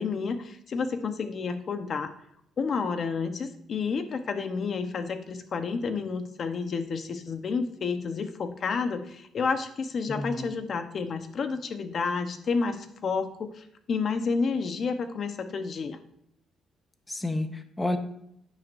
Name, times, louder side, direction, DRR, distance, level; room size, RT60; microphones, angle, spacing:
voice 1, 0.0-2.1 2.6-16.0, left 5 dB, 55° left, 8 dB, 1.1 m, -30 dB
voice 2, 10.1-10.5 17.1-18.0, left 2 dB, 15° left, 7 dB, 1.2 m, -30 dB
11.0 x 9.5 x 2.7 m, 0.74 s
cardioid pair, 90°, 0 cm